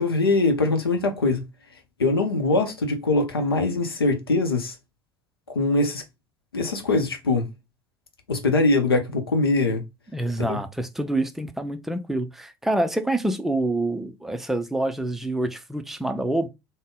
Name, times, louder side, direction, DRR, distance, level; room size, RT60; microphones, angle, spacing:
voice 1, 0.0-1.4 2.0-4.8 5.5-6.0 6.5-7.5 8.3-9.8 10.4-10.6, left 2 dB, 80° left, 0.7 m, -22 dB
voice 2, 10.1-16.5, right 1 dB, ahead, 0.5 m, -26 dB
3.5 x 2.1 x 3.6 m
figure-of-eight pair, 60°, 12 cm